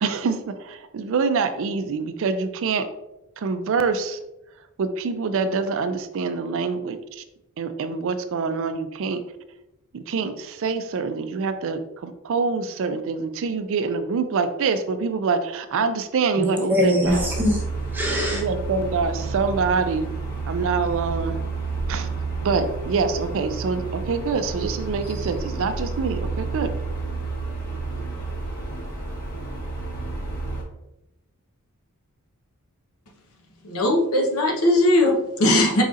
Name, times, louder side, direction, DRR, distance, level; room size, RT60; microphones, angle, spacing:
voice 1, 0.0-2.9 3.4-4.2 4.8-7.2 7.6-9.2 9.9-17.3 18.3-20.1 20.5-21.4 21.9-22.1 22.4-26.7, right 4 dB, 60° right, 9 dB, 0.4 m, -25 dB
voice 2, 16.4-18.4, left 1 dB, 10° right, -2 dB, 0.9 m, -23 dB
sound 1, 17.0-30.6, right 3 dB, 40° left, 1.3 m, -30 dB
voice 3, 33.6-35.8, left 1 dB, 70° left, 1 dB, 0.9 m, -19 dB
4.8 x 4.0 x 2.5 m, 0.92 s
head